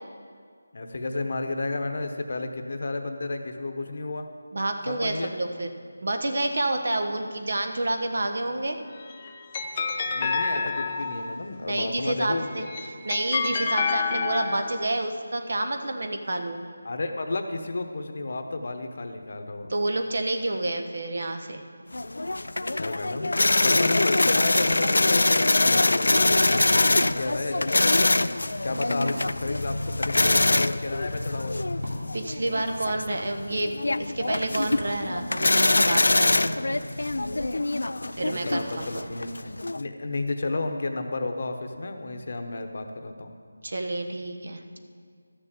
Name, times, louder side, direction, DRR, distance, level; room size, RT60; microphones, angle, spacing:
voice 1, 0.7-4.3 4.9-5.3 10.1-12.7 16.8-19.7 22.8-28.1 28.6-31.7 37.9-39.4 39.7-43.3, left 2 dB, 45° left, 6 dB, 1.0 m, -32 dB
voice 2, 4.5-5.7 6.0-8.8 11.7-12.7 13.0-16.6 19.7-21.6 32.1-36.8 38.2-38.9 43.6-44.8, right 2 dB, 55° right, 5 dB, 1.1 m, -29 dB
sound 1, 8.8-11.5 12.4-14.9, left 4 dB, 20° left, 0.6 m, -29 dB
sound 2, 21.9-39.8, left 2 dB, 80° left, 0.4 m, -24 dB
Wood, 31.0-38.8, equal, 70° right, 3.2 m, -48 dB
13.0 x 6.7 x 7.5 m, 2.1 s
figure-of-eight pair, 175°, 0 cm